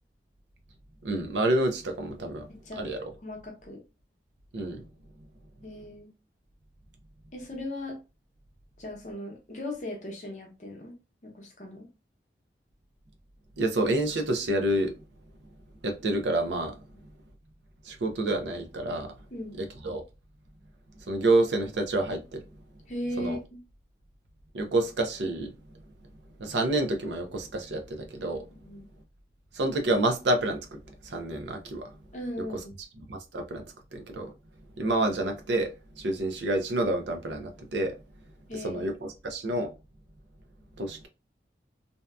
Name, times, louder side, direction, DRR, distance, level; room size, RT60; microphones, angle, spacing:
voice 1, 1.0-2.5 2.8-3.0 4.5-4.8 13.6-14.9 15.8-16.8 17.9-19.1 19.6-20.0 21.1-22.4 23.2-23.4 24.5-25.5 26.4-28.4 29.6-30.8 31.1-31.9 33.1-33.6 33.9-34.3 34.8-35.7 36.0-38.0 38.6-39.7 40.8-41.1, right 2 dB, 85° right, 0.5 m, -28 dB
voice 2, 2.5-2.9 3.2-3.8 5.6-6.1 7.3-8.0 8.8-10.9 11.2-11.9 19.3-19.6 22.9-23.6 28.5-28.9 32.1-32.7 38.5-38.9, left 1 dB, 40° left, 0.8 m, -38 dB
2.7 x 2.2 x 2.3 m
head